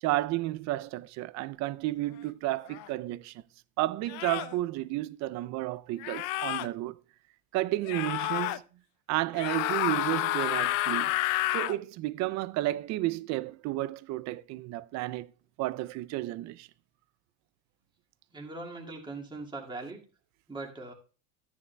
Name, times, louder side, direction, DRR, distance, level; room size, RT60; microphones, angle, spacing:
voice 1, 0.0-3.3 3.8-7.0 7.5-8.6 9.1-11.1 11.5-15.3 15.6-16.7, right 17 dB, 50° right, 0.5 m, -32 dB
sound 1, 2.7-2.9 4.1-4.6 6.0-6.7 7.9-8.6 9.3-11.8, left 16 dB, 60° left, 0.6 m, -30 dB
voice 2, 18.3-20.0 20.5-20.9, right 3 dB, 10° right, 2.0 m, -40 dB
13.5 x 9.9 x 2.2 m
supercardioid pair, 120°, 37 cm